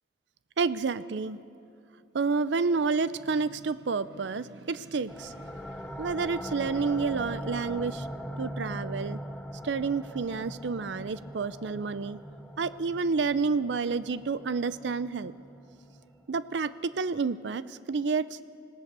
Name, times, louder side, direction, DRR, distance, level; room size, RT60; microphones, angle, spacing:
voice 1, 0.6-1.4 2.1-5.6 6.0-8.1 8.4-9.2 9.6-12.2 12.6-15.3 16.3-18.4, right 4 dB, 80° right, 16 dB, 0.5 m, -29 dB
sound 1, 5.1-16.4, equal, 5° left, 0.8 m, -41 dB
26.0 x 17.5 x 6.8 m, 2.7 s
head